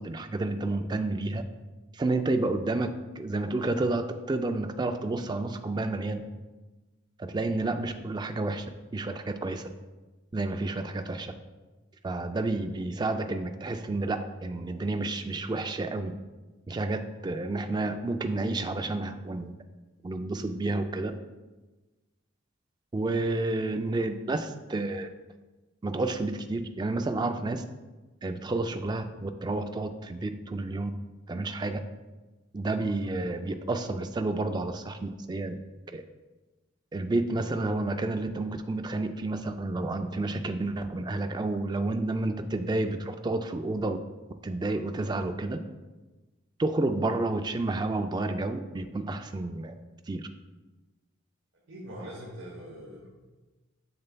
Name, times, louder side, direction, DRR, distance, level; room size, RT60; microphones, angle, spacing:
voice 1, 0.0-1.4 1.9-2.9 3.2-6.2 7.2-8.7 8.9-9.6 10.3-11.3 12.0-16.1 16.7-19.5 20.0-21.1 22.9-25.1 25.8-27.6 28.2-30.9 31.3-31.8 32.5-35.5 35.9-36.0 36.9-44.0 44.4-45.6 46.6-49.7 50.1-50.2, right 2 dB, 20° right, 6 dB, 0.3 m, -30 dB
voice 2, 51.7-53.1, equal, 65° right, -4 dB, 1.1 m, -42 dB
6.8 x 6.5 x 2.2 m, 1.2 s
head